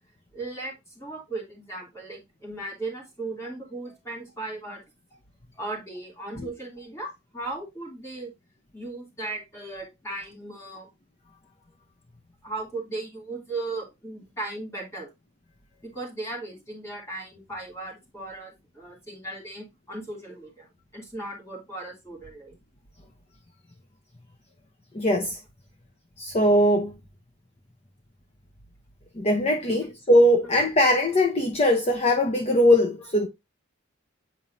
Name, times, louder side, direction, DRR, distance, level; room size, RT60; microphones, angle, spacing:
voice 1, 0.3-4.8 5.1-5.2 5.6-8.3 8.7-10.9 12.4-15.1 15.8-22.5 29.7-29.8, right 2 dB, 15° left, 2.9 m, -37 dB
voice 2, 24.9-25.4 26.2-26.9 29.2-33.3, left 1 dB, 30° left, 0.8 m, -21 dB
9.0 x 4.5 x 2.7 m
head